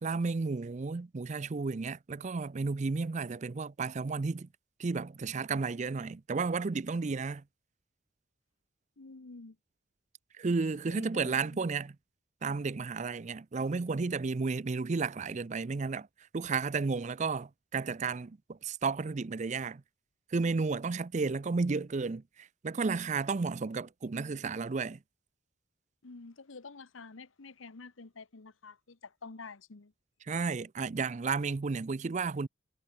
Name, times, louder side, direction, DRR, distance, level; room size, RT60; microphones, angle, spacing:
voice 1, 0.0-4.5 4.8-7.4 10.4-12.0 12.4-16.1 16.3-19.8 20.3-25.0 30.3-32.5, right 4 dB, 35° right, 0.4 m, -32 dB
voice 2, 9.0-9.6 10.9-11.6 26.0-29.9, left 4 dB, 90° left, 1.1 m, -49 dB
head